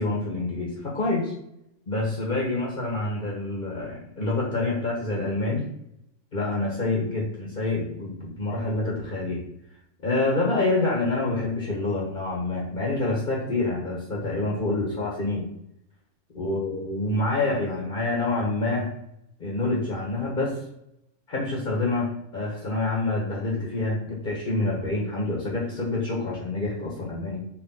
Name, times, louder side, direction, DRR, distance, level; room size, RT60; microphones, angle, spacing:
voice 1, 0.0-1.3 1.9-5.7 6.3-9.4 10.0-15.4 16.4-18.9 19.4-20.6 21.3-27.4, left 2 dB, 40° left, -3 dB, 1.8 m, -27 dB
5.0 x 4.6 x 4.1 m, 0.77 s
omnidirectional pair, 1.3 m